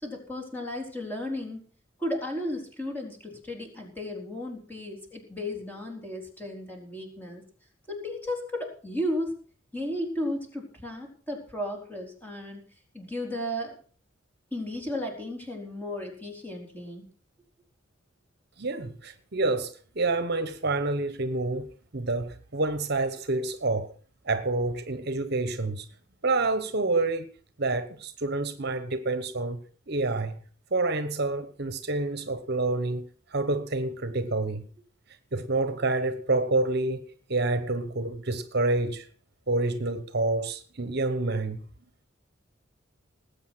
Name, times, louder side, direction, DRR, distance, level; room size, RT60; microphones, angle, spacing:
voice 1, 0.0-1.6 2.0-7.4 7.9-9.4 9.7-12.7 12.9-13.8 14.5-17.0, left 1 dB, 10° left, 4.2 m, -34 dB
voice 2, 18.6-21.7 21.9-23.9 24.2-25.9 26.2-27.3 27.6-30.4 30.7-34.7 35.3-37.0 37.3-39.1 39.5-41.6, right 2 dB, 55° right, 1.1 m, -28 dB
19.5 x 8.4 x 6.2 m
head